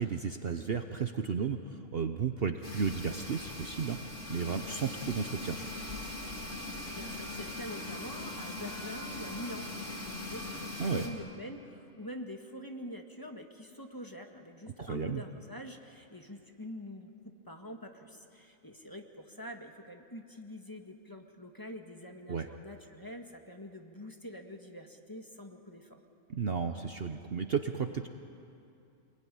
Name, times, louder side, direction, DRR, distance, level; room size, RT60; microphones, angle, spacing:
voice 1, 0.0-5.7 10.8-11.1 14.8-15.2 22.3-22.5 26.3-28.1, right 6 dB, 50° right, 7 dB, 1.0 m, -33 dB
sound 1, 2.6-11.1, left 2 dB, 60° left, 2.9 m, -41 dB
voice 2, 6.8-26.0, left 1 dB, 15° left, 3 dB, 1.7 m, -45 dB
26.5 x 20.5 x 10.0 m, 2.6 s
omnidirectional pair, 1.5 m